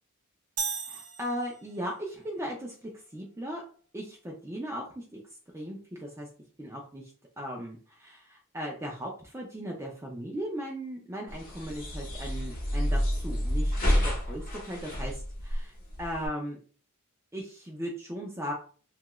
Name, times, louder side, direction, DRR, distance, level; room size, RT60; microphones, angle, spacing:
sound 1, 0.6-2.0, right 5 dB, 85° right, 0.7 m, -36 dB
voice 1, 0.9-3.6 3.9-5.2 5.5-6.3 6.6-7.1 7.4-13.7 14.0-16.6 17.3-18.5, equal, 10° right, -2 dB, 0.4 m, -37 dB
sound 2, 11.3-16.3, equal, 45° left, 0.9 m, -29 dB
2.8 x 2.3 x 3.0 m, 0.40 s
head